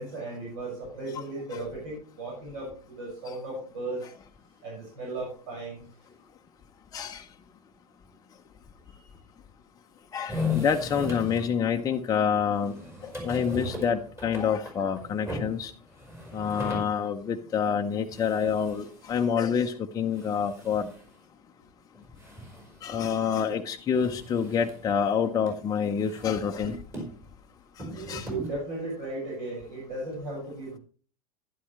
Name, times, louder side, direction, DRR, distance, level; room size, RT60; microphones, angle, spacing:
voice 1, 0.0-4.0 4.6-5.8 9.0-9.1 27.8-30.8, right 2 dB, 60° right, -3 dB, 6.1 m, -36 dB
voice 2, 6.9-7.2 10.1-12.7 13.0-15.7 16.3-20.9 22.8-26.8 28.1-28.3, left 7 dB, 20° left, 4 dB, 0.7 m, -27 dB
sound 1, 10.3-11.5 12.1-12.2 12.5-17.0 17.4-17.5 17.7-17.8 18.0-19.3 20.1-21.2 21.9-23.1 23.5-23.6 23.9-24.9 25.5-25.6 26.0-27.3 27.8-28.5, left 2 dB, 15° right, 4.7 m, -38 dB
11.0 x 11.0 x 3.2 m, 0.40 s
figure-of-eight pair, 95°, 20 cm